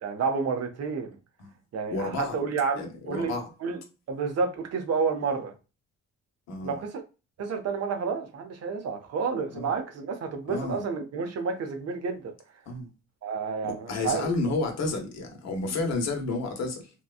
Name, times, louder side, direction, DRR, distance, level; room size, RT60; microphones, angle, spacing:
voice 1, 0.0-1.2 1.7-3.3 3.6-3.8 4.1-5.5 6.6-7.0 7.4-12.3 13.2-14.3, right 5 dB, 55° right, 0.7 m, -30 dB
voice 2, 1.9-2.4 2.8-3.5 6.5-6.8 9.5-9.7 10.5-10.8 12.7-12.9 13.6-16.9, left 3 dB, 60° left, 0.9 m, -31 dB
2.8 x 2.2 x 2.3 m
cardioid pair, 90°, 30 cm